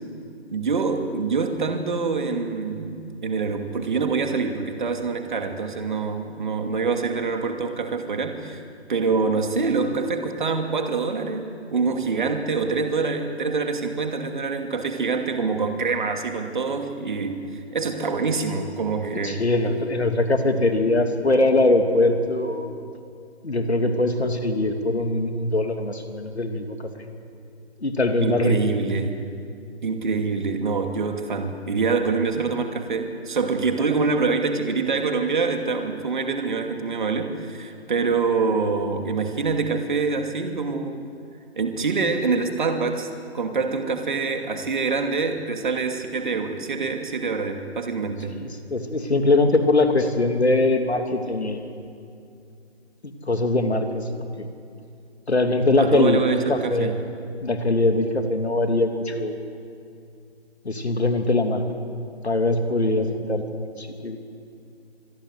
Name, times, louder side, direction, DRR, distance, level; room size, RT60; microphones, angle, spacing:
voice 1, 0.5-8.6 8.9-17.4 17.7-19.4 28.2-29.2 29.8-41.0 41.6-43.1 43.3-48.3 55.8-57.0, right 4 dB, 45° right, 5 dB, 2.8 m, -25 dB
voice 2, 19.2-22.8 23.4-26.9 27.8-28.6 33.8-34.0 48.3-51.6 53.0-54.0 54.4-54.5 55.3-56.9 57.4-59.3 60.6-61.6 62.2-64.2, left 2 dB, 70° left, 5 dB, 3.2 m, -22 dB
25.5 x 21.5 x 8.2 m, 2.4 s
figure-of-eight pair, 150°, 34 cm